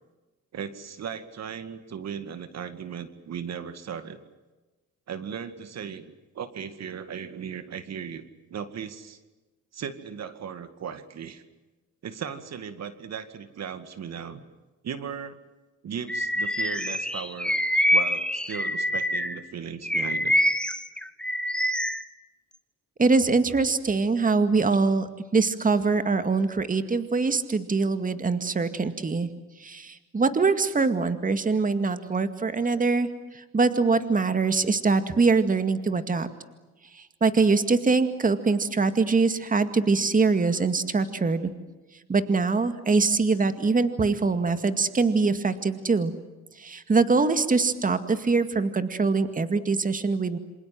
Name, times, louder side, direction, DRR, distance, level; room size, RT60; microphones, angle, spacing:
voice 1, 0.5-4.2 5.1-9.2 9.7-11.4 12.0-14.4 14.8-15.4 15.8-17.6 17.9-20.4, right 7 dB, 60° right, 11 dB, 2.2 m, -37 dB
Bird vocalization bird call bird song, 16.1-19.4 19.8-22.0, equal, 5° left, 1.8 m, -25 dB
voice 2, 23.0-25.1 25.3-29.3 29.6-36.3 36.9-41.5 42.1-46.1 46.6-50.4, right 4 dB, 25° right, 10 dB, 2.1 m, -23 dB
28.0 x 26.5 x 7.7 m, 1.2 s
cardioid pair, 90°, 30 cm